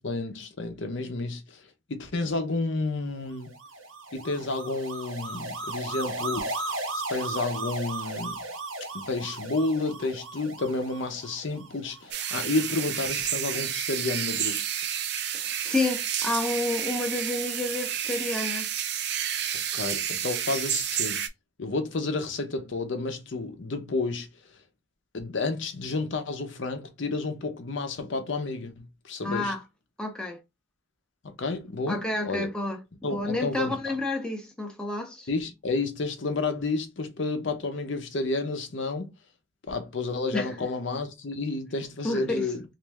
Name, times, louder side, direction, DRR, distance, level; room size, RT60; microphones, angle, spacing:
voice 1, 0.0-3.5 4.1-8.4 8.9-14.6 19.5-21.2 21.6-24.6 25.1-29.5 31.2-32.5 33.0-33.9 35.3-39.1 39.7-42.6, left 3 dB, 65° left, 0.6 m, -31 dB
sound 1, 3.4-12.7, right 2 dB, 80° right, 1.2 m, -36 dB
sound 2, 12.1-21.3, right 9 dB, 55° right, 0.4 m, -30 dB
voice 2, 15.3-18.7 29.2-29.6 30.0-30.4 31.9-35.3 40.3-40.5 42.0-42.4, left 2 dB, 5° left, 0.5 m, -30 dB
3.1 x 2.5 x 3.4 m
head